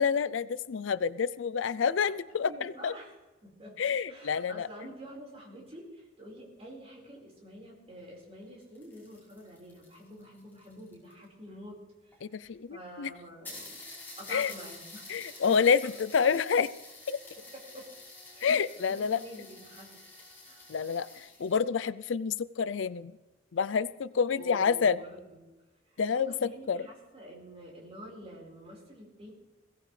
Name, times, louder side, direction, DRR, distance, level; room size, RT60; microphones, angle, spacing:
voice 1, 0.0-2.9 3.8-4.7 12.2-13.1 14.3-14.5 15.1-16.7 17.1-17.2 18.4-19.2 20.7-23.1 23.5-25.0 26.0-26.8, left 6 dB, 85° left, 17 dB, 0.5 m, -28 dB
voice 2, 2.5-3.1 3.4-3.8 4.1-12.4 12.7-13.8 14.2-15.4 17.3-17.9 18.3-20.0 20.4-20.6 24.4-25.4 25.9-29.3, equal, 35° right, -2 dB, 4.8 m, -48 dB
sound 1, 8.5-11.2 12.1-12.2 12.5-12.6 12.9-13.0 13.5-21.6, left 2 dB, 10° left, 5.1 m, -49 dB
21.5 x 16.5 x 3.3 m, 1.1 s
head